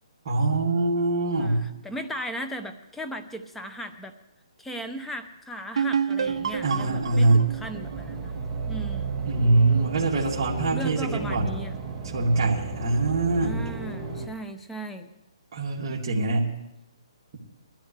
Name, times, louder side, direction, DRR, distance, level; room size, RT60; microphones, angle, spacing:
voice 1, 0.2-1.6 6.6-7.5 9.2-11.5 12.1-13.6 15.5-16.5, right 2 dB, 40° right, -5 dB, 2.3 m, -23 dB
voice 2, 1.4-4.1 4.6-8.4 8.7-9.2 10.7-11.8 13.4-15.1, right 1 dB, 5° left, 7 dB, 0.7 m, -37 dB
sound 1, 5.8-9.3, right 7 dB, 70° right, 0.5 m, -29 dB
sound 2, 6.2-14.3, right 4 dB, 15° right, 1.5 m, -34 dB
21.0 x 13.5 x 3.3 m, 0.93 s
hypercardioid pair, 160°, 3 cm